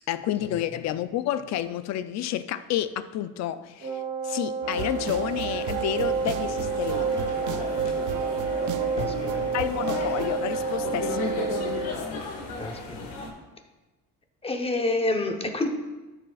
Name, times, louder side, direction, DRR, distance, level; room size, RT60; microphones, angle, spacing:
voice 1, 0.1-7.1 9.5-11.3, left 12 dB, 60° left, 12 dB, 0.5 m, -30 dB
Wind instrument woodwind instrument, 3.8-12.0, right 4 dB, 50° right, 1.6 m, -30 dB
sound 1, 4.6-10.3, right 9 dB, 75° right, 0.6 m, -33 dB
sound 2, 4.7-13.3, left 3 dB, 90° left, 1.7 m, -35 dB
voice 2, 9.0-9.4 12.6-13.1 14.4-15.7, left 2 dB, 20° left, 5 dB, 0.8 m, -28 dB
12.5 x 6.8 x 2.4 m, 1.1 s
cardioid pair, 120°, 31 cm